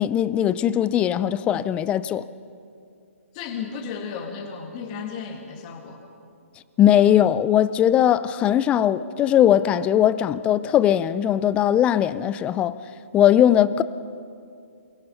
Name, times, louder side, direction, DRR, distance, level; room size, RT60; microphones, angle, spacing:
voice 1, 0.0-2.3 6.8-12.8 13.1-13.8, left 10 dB, 15° left, 0.4 m, -19 dB
voice 2, 3.3-6.0, left 6 dB, 30° left, 2.3 m, -34 dB
23.5 x 20.5 x 5.6 m
hypercardioid pair, 145°, 8 cm